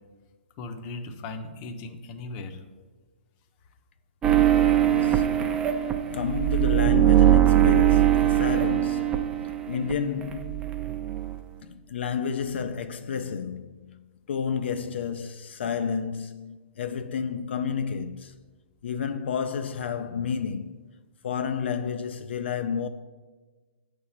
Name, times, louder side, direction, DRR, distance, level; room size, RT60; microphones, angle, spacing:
voice 1, 0.6-2.6, left 3 dB, 30° left, 0.6 m, -37 dB
sound 1, 4.2-9.9 10.2-11.4, right 13 dB, 15° right, 0.4 m, -21 dB
voice 2, 4.8-5.6 6.1-9.2 9.7-10.7 11.6-18.3 18.8-20.8 21.2-22.9, left 6 dB, 70° left, 0.4 m, -31 dB
8.0 x 3.3 x 5.6 m
hypercardioid pair, 150°, 6 cm